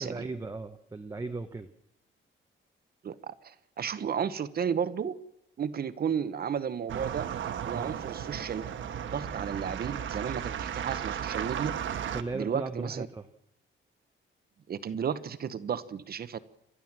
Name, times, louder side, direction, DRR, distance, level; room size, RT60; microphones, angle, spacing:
voice 1, 0.0-1.7 7.7-8.0 12.1-13.3, right 3 dB, 15° right, 5 dB, 0.9 m, -37 dB
voice 2, 3.0-5.2 5.6-7.3 7.6-8.7 9.1-11.7 12.3-13.1 14.7-16.4, right 7 dB, 50° right, 14 dB, 1.0 m, -33 dB
sound 1, 6.9-12.2, right 9 dB, 70° right, 1.3 m, -35 dB
29.5 x 12.5 x 7.4 m, 0.80 s
wide cardioid pair, 155°, 21 cm